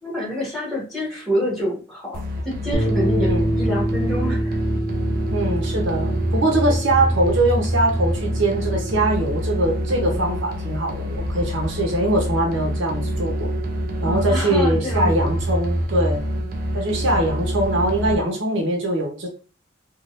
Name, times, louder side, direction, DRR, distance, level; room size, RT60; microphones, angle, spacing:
voice 1, 0.0-4.6 14.0-15.3, equal, ahead, 1.5 m, -27 dB
sound 1, 2.1-18.1, equal, 45° right, 0.5 m, -26 dB
sound 2, 2.7-9.0, right 1 dB, 50° left, 0.8 m, -26 dB
voice 2, 3.2-3.5 5.3-13.5 14.0-16.2 16.7-19.3, right 1 dB, 75° right, 1.0 m, -22 dB
3.7 x 2.4 x 2.5 m
head